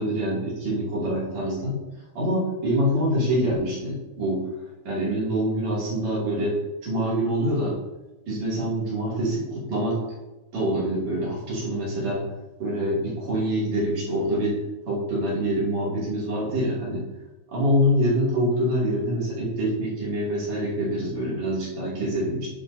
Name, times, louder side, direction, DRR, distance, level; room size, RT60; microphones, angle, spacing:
voice 1, 0.0-1.8 2.1-4.4 4.8-6.6 6.8-7.8 8.3-10.0 10.5-12.3 12.6-14.6 14.9-17.0 17.5-22.5, equal, 40° right, -7 dB, 3.0 m, -25 dB
12.5 x 5.5 x 2.7 m, 1.1 s
omnidirectional pair, 5.8 m